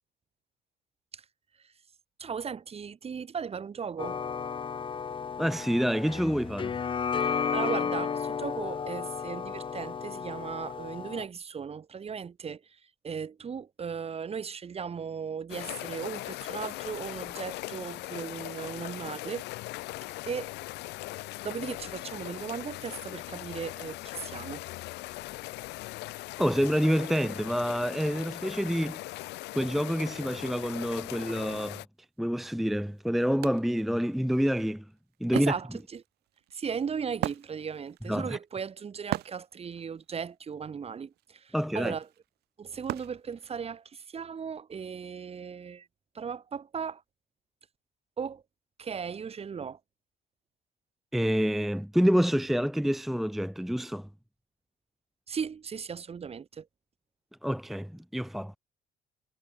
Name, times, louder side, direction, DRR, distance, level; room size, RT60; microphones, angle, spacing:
voice 1, 2.2-4.2 7.3-19.4 20.3-20.5 21.4-24.6 35.3-36.0 36.5-42.1 42.6-45.9 46.1-47.0 48.2-48.4 48.8-49.8 55.3-56.7, right 6 dB, 35° right, 4.9 m, -37 dB
sound 1, 4.0-11.3, left 6 dB, 30° left, 1.0 m, -33 dB
voice 2, 5.4-6.7 26.4-29.0 29.6-31.8 32.2-34.8 35.2-35.5 38.1-38.4 41.5-42.0 51.1-54.1 57.4-58.6, equal, ahead, 0.7 m, -27 dB
sound 2, 15.5-31.8, left 19 dB, 85° left, 3.7 m, -40 dB
Wood, 32.3-32.4 32.8-44.1, right 16 dB, 75° right, 1.3 m, -41 dB
cardioid pair, 110°, 17 cm